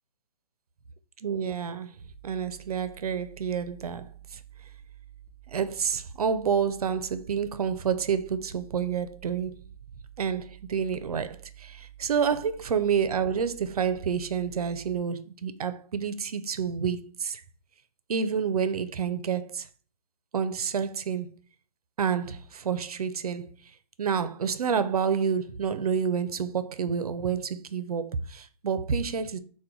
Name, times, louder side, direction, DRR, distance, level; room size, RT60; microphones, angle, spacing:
voice 1, 1.2-4.4 5.5-9.6 10.2-17.4 18.1-19.7 20.3-21.4 22.0-23.5 24.0-29.4, right 7 dB, 85° right, 0.5 m, -29 dB
sound 1, 2.0-15.0, right 12 dB, 25° right, 0.5 m, -50 dB
3.7 x 2.2 x 4.4 m
hypercardioid pair, 160°, 19 cm